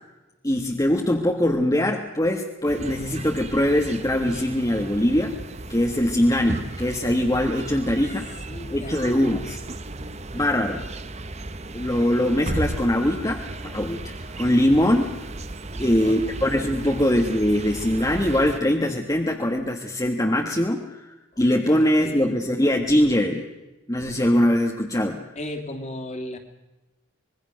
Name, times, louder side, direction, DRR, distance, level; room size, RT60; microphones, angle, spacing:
voice 1, 0.4-5.4 5.7-8.3 8.7-9.6 10.3-10.8 11.7-15.1 15.8-23.5 23.9-25.2, left 1 dB, 20° left, 1 dB, 1.5 m, -22 dB
sound 1, 2.7-18.6, right 2 dB, 35° right, 1.0 m, -35 dB
voice 2, 8.5-9.2 15.7-16.3 21.3-22.4 25.3-26.4, left 1 dB, 35° left, 5 dB, 2.8 m, -37 dB
25.5 x 21.5 x 6.5 m, 1.1 s
head